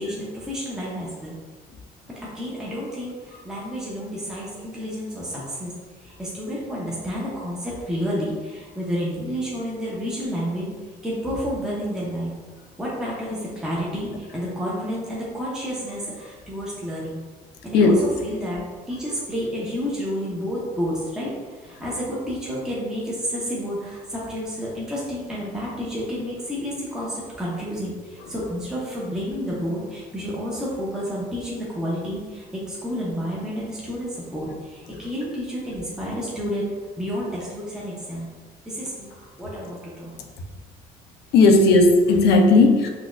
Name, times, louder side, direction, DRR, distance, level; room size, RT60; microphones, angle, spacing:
voice 1, 0.0-1.3 2.2-5.7 6.0-10.7 11.0-12.3 12.8-17.2 17.6-18.6 18.9-38.3 38.7-40.1, equal, 5° right, -6 dB, 0.7 m, -30 dB
voice 2, 41.3-42.9, left 3 dB, 75° left, 4 dB, 0.5 m, -15 dB
4.0 x 2.3 x 2.4 m, 1.4 s
cardioid pair, 110°, 17 cm